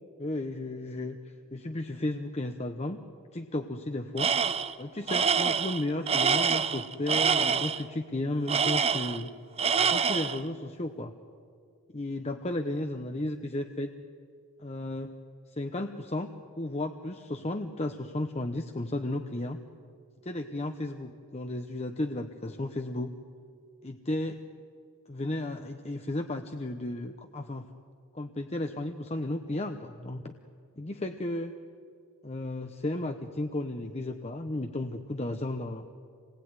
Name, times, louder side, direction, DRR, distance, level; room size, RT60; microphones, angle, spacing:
voice 1, 0.2-3.0 3.3-4.3 4.8-9.3 9.9-11.1 11.9-13.9 14.6-15.2 15.5-16.3 16.6-19.6 20.2-23.1 23.8-24.4 25.1-27.7 28.1-30.3 30.8-31.5 32.2-35.9, left 1 dB, 30° left, 6 dB, 0.8 m, -34 dB
Tools, 4.2-4.7 5.1-7.8 8.5-9.3 9.6-10.4, right 6 dB, 30° right, 0.7 m, -26 dB
27.0 x 20.0 x 9.6 m, 2.3 s
head